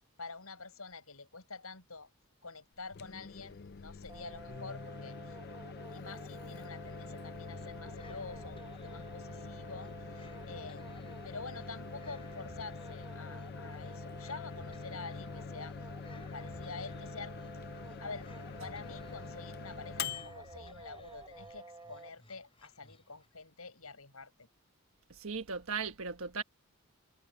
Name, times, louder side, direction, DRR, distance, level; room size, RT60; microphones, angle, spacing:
voice 1, 0.2-2.1 2.4-5.4 5.9-15.7 16.3-17.4 18.0-18.3 18.6-24.5, left 4 dB, 75° left, 6.9 m, -47 dB
Microwave oven, 2.8-21.6, left 5 dB, 45° left, 0.4 m, -45 dB
sound 1, 4.1-22.1, right 3 dB, 20° right, 1.2 m, -51 dB
sound 2, 7.5-23.4, left 1 dB, 25° left, 7.6 m, -60 dB
voice 2, 25.1-26.4, right 5 dB, 70° right, 1.4 m, -37 dB
head